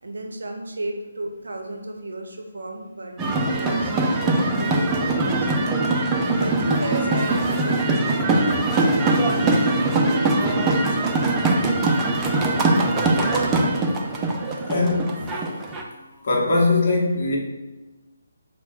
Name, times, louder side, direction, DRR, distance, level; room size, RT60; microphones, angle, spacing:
voice 1, 0.0-5.5 6.3-11.0, right 2 dB, 65° right, 3 dB, 0.5 m, -33 dB
sound 1, 3.2-15.8, right 2 dB, 15° right, 0.3 m, -22 dB
voice 2, 14.7-15.4 16.2-17.4, left 2 dB, 40° left, -3 dB, 0.9 m, -21 dB
5.6 x 2.1 x 2.3 m, 1.1 s
figure-of-eight pair, 145°, 0 cm